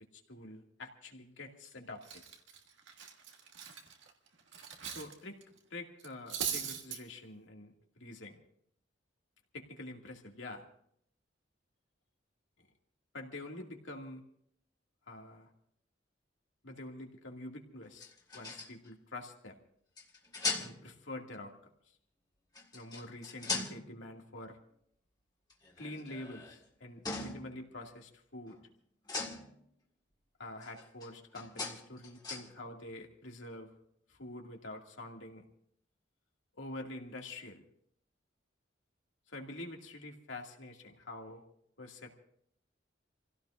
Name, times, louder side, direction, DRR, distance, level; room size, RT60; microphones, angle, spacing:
voice 1, 0.1-2.2 4.9-5.4 5.7-8.4 9.5-10.7 12.6-12.7 13.1-14.3 15.1-15.5 16.6-19.6 20.6-21.5 21.9-22.0 22.7-24.6 25.8-28.6 30.4-33.7 34.1-35.4 36.6-37.6 39.3-41.4 41.8-42.1, left 2 dB, 80° left, 1 dB, 2.3 m, -46 dB
Cutlery silverware, 1.4-1.7 2.0-5.1 5.4-5.6 6.0-7.0, right 8 dB, 75° right, 1.8 m, -40 dB
sound 1, 18.0-18.9 20.0-20.9 22.5-24.1 25.5-26.6 27.1-27.6 28.5-28.7 29.0-29.7 30.6-32.5, left 3 dB, 20° left, 1.8 m, -40 dB
28.0 x 16.5 x 2.6 m, 0.66 s
head